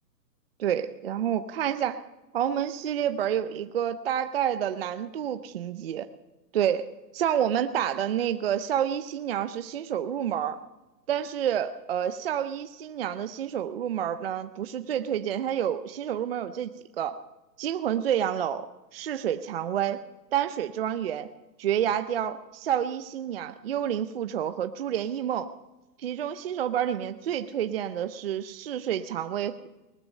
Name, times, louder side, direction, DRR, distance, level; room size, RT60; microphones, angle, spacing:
voice 1, 0.6-2.0 2.3-6.1 6.5-10.6 11.1-17.2 17.6-20.0 20.3-21.3 21.6-25.5 26.0-29.7, right 9 dB, 40° right, 10 dB, 0.5 m, -29 dB
19.5 x 12.5 x 5.3 m, 1.1 s
hypercardioid pair, 150°, 50 cm